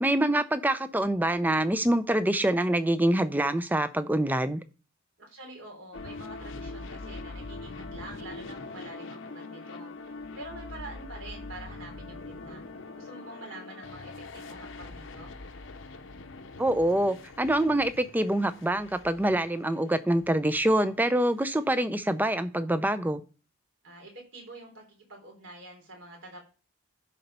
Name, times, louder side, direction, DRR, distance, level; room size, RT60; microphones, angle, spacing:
voice 1, 0.0-4.6 16.6-23.2, right 1 dB, 10° right, 0.5 m, -25 dB
voice 2, 5.2-9.9 10.4-12.6 12.9-15.3 23.8-26.5, right 2 dB, 65° right, 3.5 m, -46 dB
sound 1, 5.9-22.3, left 3 dB, 60° left, 0.8 m, -43 dB
11.0 x 4.1 x 5.5 m
head